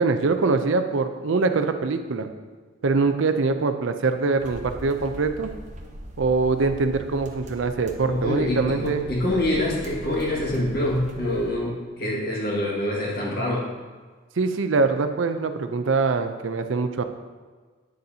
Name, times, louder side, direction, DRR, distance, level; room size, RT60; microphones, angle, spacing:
voice 1, 0.0-2.3 2.8-5.5 6.2-9.0 14.4-17.0, right 4 dB, 75° right, 8 dB, 0.5 m, -23 dB
sound 1, 4.4-11.5, right 1 dB, 35° right, 0.7 m, -40 dB
voice 2, 8.0-13.7, left 1 dB, 50° left, -4 dB, 1.8 m, -25 dB
9.4 x 6.6 x 2.8 m, 1.4 s
head